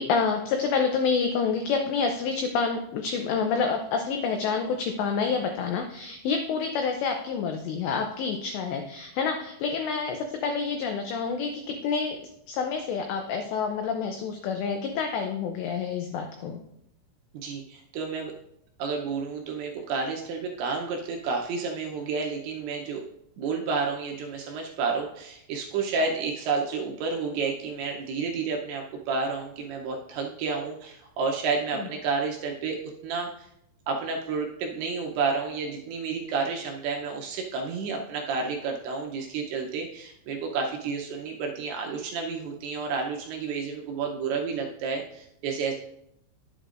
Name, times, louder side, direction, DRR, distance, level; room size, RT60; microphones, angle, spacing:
voice 1, 0.0-12.2 12.5-16.6 31.7-31.9, left 5 dB, 85° left, 4 dB, 2.4 m, -28 dB
voice 2, 17.3-18.3 18.8-23.0 23.4-32.8 33.0-33.5 33.9-45.7, right 4 dB, 75° right, 0 dB, 2.7 m, -30 dB
11.0 x 8.0 x 2.5 m, 0.76 s
omnidirectional pair, 5.8 m